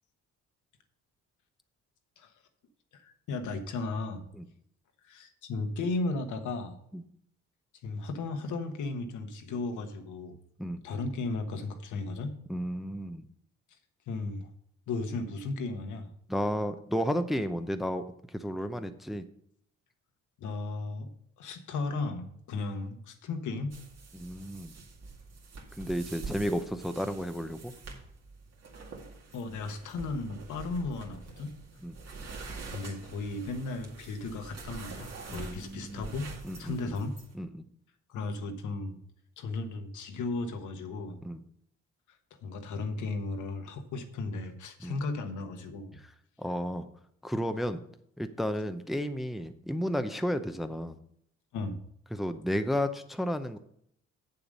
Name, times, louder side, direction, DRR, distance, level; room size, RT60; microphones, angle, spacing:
voice 1, 2.9-4.2 5.0-6.8 7.8-10.4 10.8-12.4 14.1-14.5 14.9-16.1 20.4-21.1 21.4-23.8 29.3-31.6 32.7-36.3 36.6-37.2 38.1-39.0 39.4-41.2 42.4-46.0 51.5-51.8, left 3 dB, 75° left, 6 dB, 1.3 m, -35 dB
voice 2, 12.5-13.3 16.3-18.0 18.3-19.2 24.1-24.7 25.8-27.7 31.8-31.9 35.3-36.1 36.4-37.0 37.3-37.5 41.2-41.4 44.8-44.9 46.4-46.9 47.2-47.8 48.2-51.0 52.1-53.6, equal, ahead, 8 dB, 0.6 m, -32 dB
sound 1, 23.7-37.3, right 4 dB, 55° right, 2.1 m, -46 dB
8.0 x 7.1 x 5.3 m, 0.69 s
cardioid pair, 90°, 30 cm